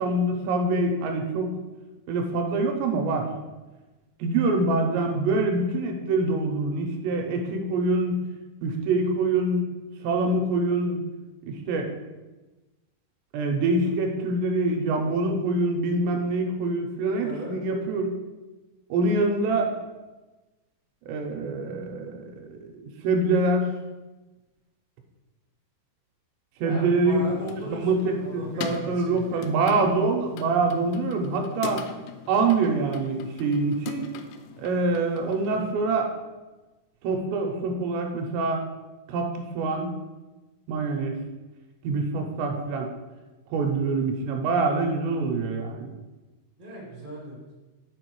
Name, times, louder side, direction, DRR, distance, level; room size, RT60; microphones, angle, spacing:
voice 1, 0.0-1.5 2.1-3.3 4.2-8.2 8.6-9.7 10.0-11.0 11.5-11.9 13.3-18.1 18.9-19.8 21.1-23.7 26.6-27.3 27.7-31.8 32.3-34.1 34.6-36.1 37.0-38.6 39.1-39.9 40.7-41.2 41.8-42.9 43.5-45.9, right 3 dB, 80° right, 3 dB, 2.9 m, -25 dB
voice 2, 17.2-17.5 26.6-29.4 46.6-47.5, equal, 60° right, -4 dB, 0.5 m, -38 dB
sound 1, 27.0-35.8, left 7 dB, 85° left, 2.5 m, -41 dB
8.6 x 5.1 x 4.6 m, 1.1 s
omnidirectional pair, 5.3 m